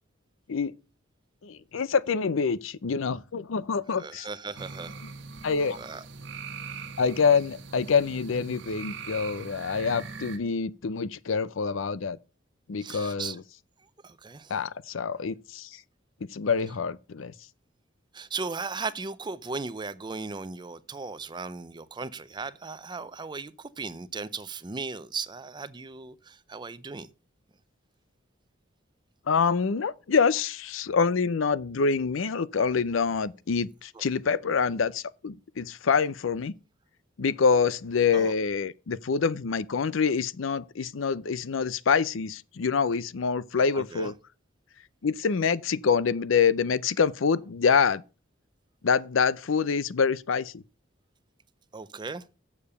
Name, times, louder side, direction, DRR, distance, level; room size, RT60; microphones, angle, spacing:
voice 1, 1.4-4.3 5.4-5.8 7.0-12.2 12.7-13.4 14.5-15.8 16.2-17.3 29.3-36.5 37.2-44.1 45.0-48.0 48.8-50.6, left 5 dB, 90° left, 0.5 m, -26 dB
voice 2, 4.0-5.0 5.7-6.0 12.8-13.4 14.0-14.5 18.1-27.1 33.9-34.0 38.1-38.3 43.7-44.1 51.7-52.2, right 4 dB, 25° right, 0.5 m, -37 dB
sound 1, 4.5-10.4, right 5 dB, 65° right, 1.3 m, -41 dB
7.2 x 6.7 x 6.7 m
head